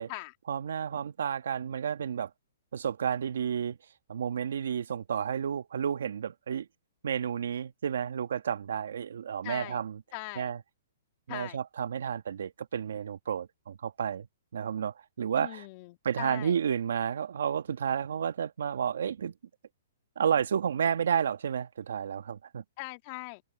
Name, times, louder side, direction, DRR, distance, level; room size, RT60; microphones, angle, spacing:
voice 1, 0.5-2.3 2.7-3.8 4.1-6.7 7.0-10.0 10.4-10.6 11.3-14.3 14.5-15.7 16.0-19.3 20.2-22.6, right 8 dB, 75° right, 1.5 m, -31 dB
voice 2, 9.4-9.8 10.1-10.5 11.3-11.6 15.4-16.5 22.8-23.4, left 25 dB, 40° left, 1.9 m, -40 dB
open air
hypercardioid pair, 135°, 0 cm